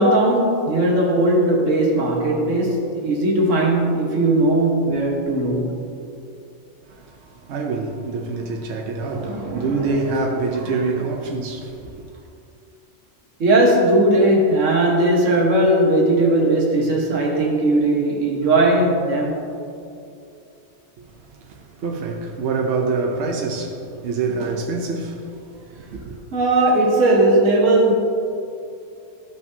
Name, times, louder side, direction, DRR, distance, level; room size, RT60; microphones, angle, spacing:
voice 1, 0.0-5.7 9.1-9.8 10.6-10.7 13.4-19.4 26.3-27.9, right 1 dB, 90° right, 1.6 m, -18 dB
voice 2, 6.9-12.0 21.0-21.1 21.5-25.3 25.8-26.2, right 3 dB, 70° right, 1.0 m, -26 dB
13.5 x 5.8 x 2.7 m
omnidirectional pair, 1.3 m